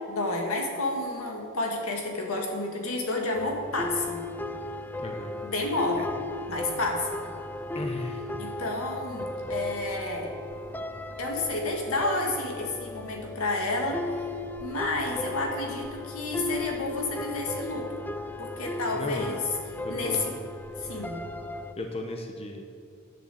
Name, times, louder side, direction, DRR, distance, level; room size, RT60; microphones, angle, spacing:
voice 1, 0.1-4.2 5.4-6.1 6.5-7.3 8.4-10.3 11.2-14.3 14.6-18.0 18.4-19.4 19.9-20.3 20.8-21.2, left 2 dB, 80° left, 1 dB, 2.1 m, -30 dB
sound 1, 3.3-21.7, left 2 dB, 10° left, 0.3 m, -36 dB
voice 2, 5.0-5.3 7.7-8.3 18.9-19.4 19.8-20.4 21.8-22.7, left 1 dB, 30° left, 3 dB, 0.9 m, -35 dB
10.0 x 7.1 x 7.8 m, 2.6 s
head